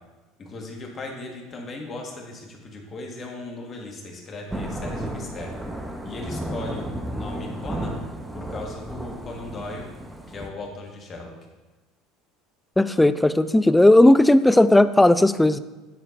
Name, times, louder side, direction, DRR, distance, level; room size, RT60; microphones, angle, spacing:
voice 1, 0.4-5.5 6.0-8.0 8.3-9.9 10.3-11.3, left 2 dB, 35° left, 1 dB, 1.4 m, -37 dB
Thunder / Rain, 4.5-10.5, right 1 dB, 10° right, 0.8 m, -33 dB
voice 2, 12.8-15.6, left 1 dB, 10° left, 14 dB, 0.3 m, -16 dB
9.8 x 4.4 x 2.5 m, 1.2 s
hypercardioid pair, 70°, 0 cm